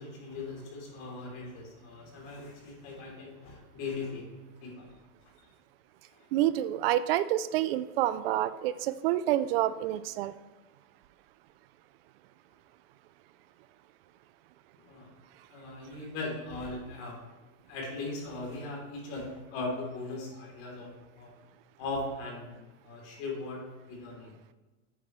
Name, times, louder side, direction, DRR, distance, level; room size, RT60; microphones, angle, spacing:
voice 1, 0.0-4.9 5.2-5.5 6.1-6.3 14.8-15.1 15.5-17.2 17.7-20.9 21.2-21.3 21.8-23.6 23.9-24.3, left 3 dB, 45° left, -1 dB, 3.3 m, -39 dB
voice 2, 6.3-10.3, right 13 dB, 50° right, 14 dB, 0.5 m, -28 dB
9.9 x 9.2 x 3.2 m, 1.2 s
supercardioid pair, 175°, 38 cm